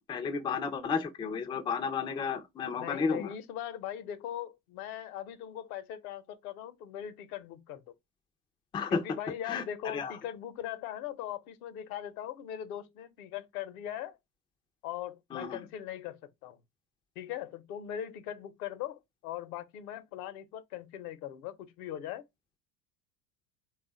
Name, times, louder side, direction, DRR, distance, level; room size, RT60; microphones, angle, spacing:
voice 1, 0.0-3.3 8.7-9.0 9.5-10.1 15.3-15.6, left 5 dB, 10° left, 0.3 m, -32 dB
voice 2, 2.7-7.8 8.9-14.2 14.8-16.6 17.2-22.2, left 11 dB, 65° left, 0.8 m, -40 dB
3.5 x 2.4 x 3.9 m
hypercardioid pair, 85°, 46 cm